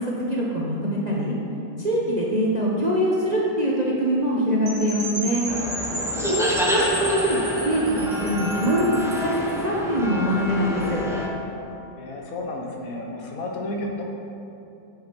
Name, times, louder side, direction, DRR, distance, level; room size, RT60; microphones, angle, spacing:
voice 1, 0.0-1.4 1.8-5.5 6.3-7.4 7.6-11.0, equal, 35° right, -4 dB, 0.7 m, -23 dB
Percussion / Wind chime, 4.7-9.3, equal, 55° right, 2.3 m, -33 dB
sound 1, 5.5-11.3, left 1 dB, 5° right, 0.4 m, -28 dB
voice 2, 11.7-14.0, left 2 dB, 65° left, 0 dB, 1.3 m, -32 dB
8.8 x 5.9 x 4.5 m, 2.7 s
omnidirectional pair, 1.7 m